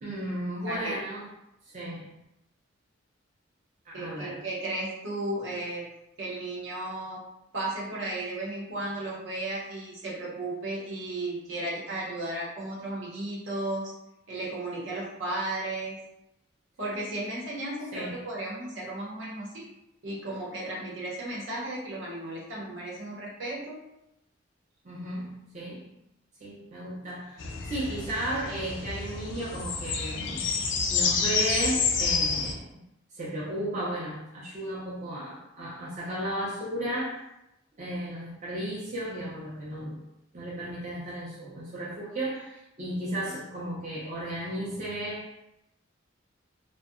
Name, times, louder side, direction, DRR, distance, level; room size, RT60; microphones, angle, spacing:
voice 1, 0.0-1.3 1.7-2.1 3.8-4.4 17.9-18.3 24.8-25.9 26.4-30.6 30.9-32.7 33.1-37.3 37.8-40.0 40.3-45.5, right 1 dB, 35° right, -8 dB, 0.5 m, -34 dB
voice 2, 0.6-1.0 3.9-5.9 6.2-7.2 7.5-13.9 14.3-16.0 16.8-19.7 20.0-23.8, right 1 dB, 65° right, -4 dB, 0.8 m, -34 dB
sound 1, 27.4-32.5, left 5 dB, 65° left, 0.3 m, -29 dB
2.7 x 2.2 x 2.4 m, 0.87 s
head